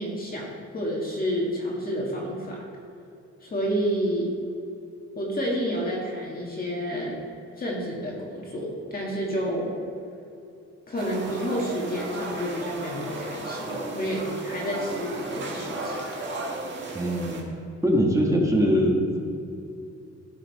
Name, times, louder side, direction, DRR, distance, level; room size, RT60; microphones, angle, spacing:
voice 1, 0.0-2.6 3.4-4.3 5.2-7.2 7.6-9.7 10.9-16.0, equal, 30° left, -3 dB, 1.7 m, -29 dB
sound 1, 11.0-17.4, right 2 dB, 40° right, 1.6 m, -34 dB
voice 2, 16.9-17.5 17.8-19.2, equal, 10° right, -1 dB, 1.4 m, -22 dB
15.5 x 5.8 x 4.1 m, 2.7 s
wide cardioid pair, 155°, 29 cm